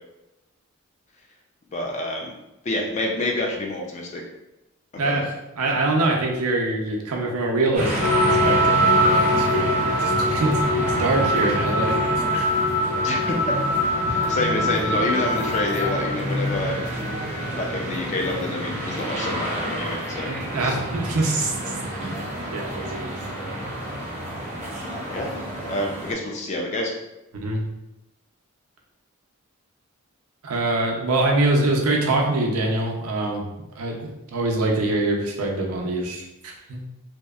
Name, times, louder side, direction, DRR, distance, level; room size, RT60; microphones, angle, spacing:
voice 1, 1.7-2.3 2.6-4.2 4.9-5.2 13.0-13.6 14.1-16.9 17.5-20.8 25.0-25.3 25.6-26.9, left 1 dB, 30° left, 0 dB, 0.3 m, -28 dB
voice 2, 5.0-12.6 20.3-21.7 22.0-22.2 22.5-23.6 27.3-27.6 30.4-33.4 33.8-36.8, right 2 dB, 85° right, 0 dB, 0.5 m, -25 dB
sound 1, 7.7-26.1, equal, 30° right, 0.5 m, -29 dB
sound 2, 8.0-16.1, equal, 90° left, 0.5 m, -22 dB
2.7 x 2.0 x 2.3 m, 0.95 s
head